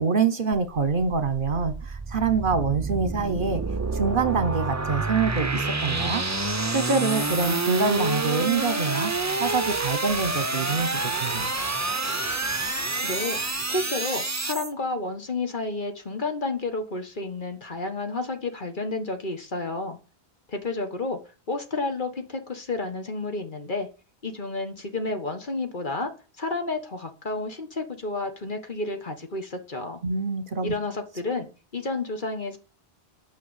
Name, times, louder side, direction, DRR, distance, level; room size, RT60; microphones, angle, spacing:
voice 1, 0.0-3.6 3.9-6.2 6.7-9.1 9.4-11.5 30.0-30.7, right 5 dB, 50° right, 10 dB, 1.2 m, -25 dB
sound 1, 0.5-14.7, right 3 dB, 15° right, 0.8 m, -28 dB
voice 2, 13.0-20.0 20.5-21.2 21.5-23.9 24.2-26.1 26.4-30.0 30.6-31.5 31.7-32.6, left 3 dB, 50° left, 6 dB, 1.7 m, -31 dB
9.3 x 5.9 x 8.2 m, 0.35 s
omnidirectional pair, 1.1 m